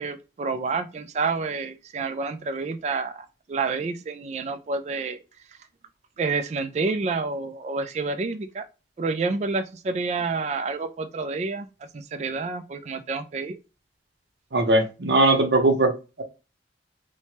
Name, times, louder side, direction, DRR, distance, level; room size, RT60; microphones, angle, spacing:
voice 1, 0.0-3.1 3.5-5.2 6.2-8.6 9.0-11.7 11.9-13.6, right 4 dB, 40° right, 0.3 m, -28 dB
voice 2, 14.5-15.9, right 2 dB, 70° right, 0.7 m, -19 dB
3.1 x 2.1 x 2.8 m
head